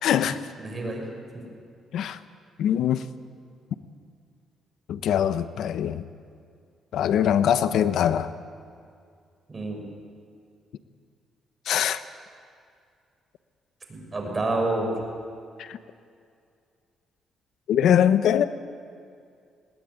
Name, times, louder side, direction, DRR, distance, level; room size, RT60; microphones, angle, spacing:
voice 1, 0.0-0.4 1.9-2.2 2.6-3.0 4.9-6.0 6.9-8.3 11.7-12.0 15.6-15.8 17.7-18.4, left 9 dB, 75° left, 1.0 m, -22 dB
voice 2, 0.6-1.1 9.5-9.8 13.9-14.9, right 2 dB, 30° right, 6.2 m, -28 dB
21.0 x 19.0 x 9.4 m
cardioid pair, 90°, 0 cm